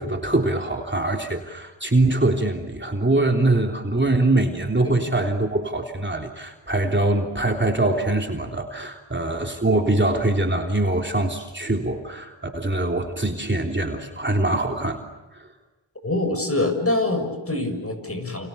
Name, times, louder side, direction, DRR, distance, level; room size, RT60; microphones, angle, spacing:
voice 1, 0.0-15.0 15.3-15.5, right 2 dB, 25° right, 2 dB, 3.4 m, -23 dB
voice 2, 16.0-18.5, left 2 dB, 30° left, 6 dB, 7.2 m, -24 dB
29.5 x 29.0 x 7.0 m, 1.1 s
wide cardioid pair, 60°, 46 cm